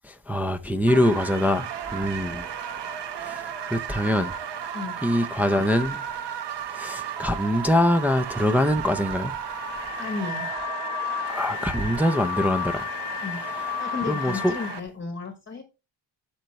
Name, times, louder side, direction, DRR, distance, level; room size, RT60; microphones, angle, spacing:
voice 1, 0.0-2.5 3.2-4.3 5.0-6.0 6.7-9.3 11.3-12.9 14.1-14.5, left 1 dB, 5° right, 0.4 m, -24 dB
sound 1, 0.9-14.8, right 8 dB, 60° right, 1.1 m, -34 dB
Car / Alarm, 9.4-14.8, left 13 dB, 45° left, 1.0 m, -33 dB
voice 2, 10.0-10.5 13.2-13.5 13.8-15.6, left 4 dB, 25° left, 1.0 m, -33 dB
8.7 x 6.5 x 3.1 m
wide cardioid pair, 170°, 46 cm